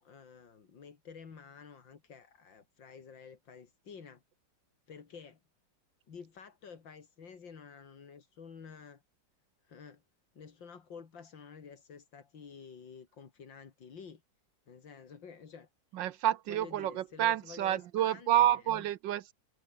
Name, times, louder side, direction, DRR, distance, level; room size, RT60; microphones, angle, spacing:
voice 1, 0.0-4.2 4.9-5.4 6.1-9.0 9.6-10.0 10.3-14.2 14.7-15.7 16.5-18.9, left 6 dB, 85° left, 3.1 m, -50 dB
voice 2, 15.9-19.3, right 12 dB, 80° right, 1.5 m, -29 dB
omnidirectional pair, 2.0 m